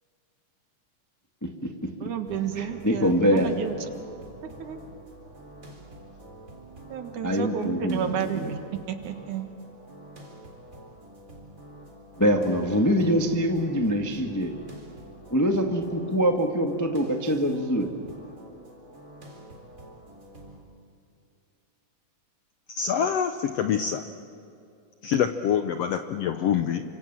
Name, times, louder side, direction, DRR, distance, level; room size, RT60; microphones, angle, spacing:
voice 1, 2.0-3.9 4.4-4.8 6.9-8.6 8.9-9.5, right 8 dB, 70° right, 7 dB, 2.9 m, -31 dB
sound 1, 2.3-20.6, right 1 dB, 25° right, 4.2 m, -47 dB
voice 2, 2.5-3.5 7.2-8.5 12.2-14.5 15.3-17.9, equal, 15° left, 3 dB, 0.7 m, -24 dB
voice 3, 22.7-24.0 25.0-26.9, left 8 dB, 75° left, 8 dB, 1.5 m, -25 dB
30.0 x 26.0 x 7.4 m, 2.5 s
omnidirectional pair, 3.7 m